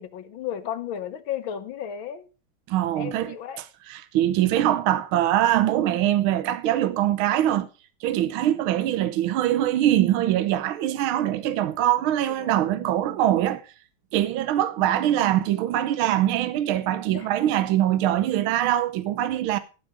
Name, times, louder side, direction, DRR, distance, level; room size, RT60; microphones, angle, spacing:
voice 1, 0.0-2.3 3.0-3.6 12.4-12.8 14.8-15.2 17.1-17.3, left 9 dB, 70° left, 1.7 m, -34 dB
voice 2, 2.7-3.4 3.9-7.7 8.0-13.6 14.1-19.6, right 12 dB, 75° right, 1.6 m, -23 dB
12.5 x 7.3 x 4.9 m
omnidirectional pair, 2.4 m